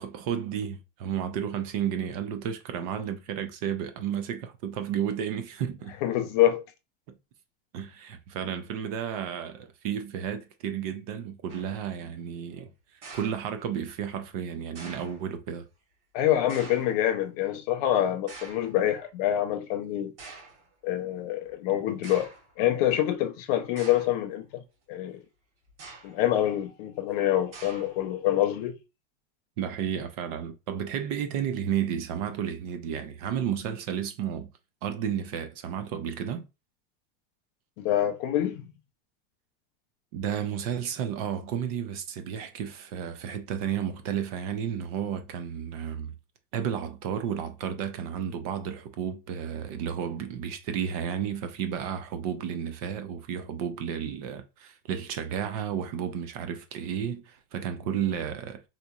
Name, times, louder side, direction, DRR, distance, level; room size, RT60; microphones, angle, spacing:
voice 1, 0.0-6.0 7.7-12.7 13.1-15.7 21.7-21.8 29.6-34.5 34.8-36.5 40.1-46.1 46.5-58.6, right 8 dB, 40° right, 0.4 m, -32 dB
voice 2, 6.0-6.6 16.1-20.1 20.8-22.3 22.6-24.6 24.9-25.2 26.0-28.8 37.8-38.6, left 12 dB, 40° left, 0.4 m, -26 dB
sound 1, 11.5-11.9 13.0-13.9 14.8-15.3 16.5-17.1 18.3-18.8 19.6-19.7 20.2-20.7 21.5-21.6 22.0-22.5 23.8-24.3 25.7-26.3 27.5-28.2, right 3 dB, 65° right, 2.2 m, -46 dB
3.9 x 2.9 x 2.3 m
supercardioid pair, 180°, 31 cm